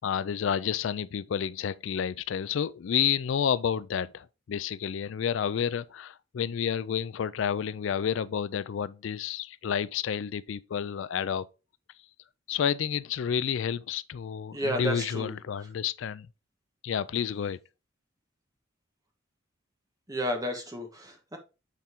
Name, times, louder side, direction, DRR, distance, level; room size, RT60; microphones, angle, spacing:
voice 1, 0.0-11.5 12.5-16.3 16.8-17.6, left 8 dB, 70° left, 0.4 m, -30 dB
voice 2, 14.5-15.3 20.1-21.4, equal, 20° right, 1.4 m, -32 dB
8.3 x 4.3 x 3.6 m
head